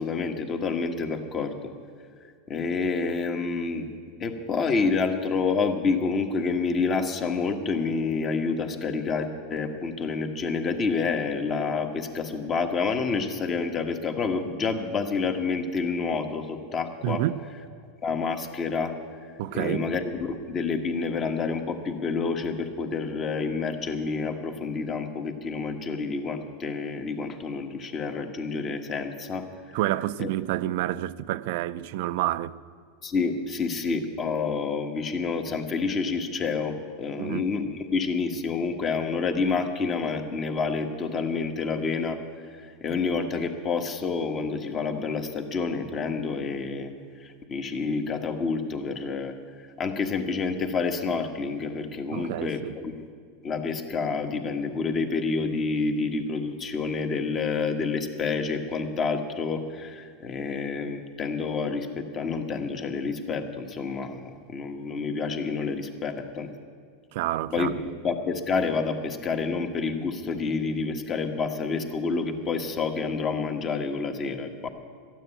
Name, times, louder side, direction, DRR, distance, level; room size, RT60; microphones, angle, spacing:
voice 1, 0.0-1.5 2.5-3.9 4.2-17.2 18.0-18.9 19.5-29.8 30.2-30.3 33.0-42.2 42.5-46.9 47.2-49.3 49.8-53.1 53.4-66.5 67.5-74.7, left 4 dB, 30° left, 1.3 m, -28 dB
voice 2, 17.0-17.4 19.4-19.9 29.7-32.6 37.2-37.5 52.1-52.8 67.1-67.8, right 14 dB, 65° right, 0.4 m, -29 dB
13.5 x 9.2 x 8.9 m
supercardioid pair, 120°, 0 cm